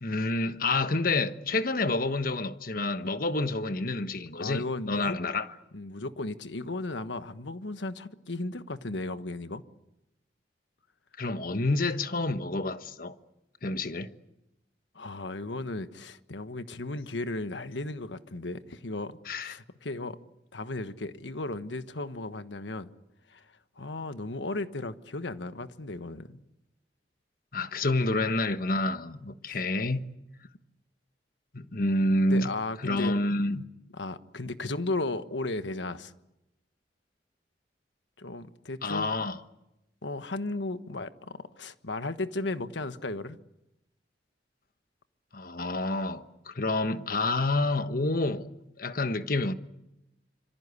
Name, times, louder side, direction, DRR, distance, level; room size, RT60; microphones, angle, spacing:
voice 1, 0.0-5.5 11.2-13.2 13.6-14.1 19.3-19.5 27.5-30.0 31.5-32.5 32.8-33.6 38.8-39.4 45.3-48.5 48.8-49.5, left 2 dB, 50° left, 1.3 m, -28 dB
voice 2, 4.4-5.2 5.7-9.6 14.9-20.2 20.5-22.9 23.3-26.4 29.5-29.6 32.3-33.2 33.9-36.1 38.2-39.1 40.0-43.4, left 2 dB, 85° left, 1.3 m, -35 dB
26.5 x 25.0 x 8.4 m
head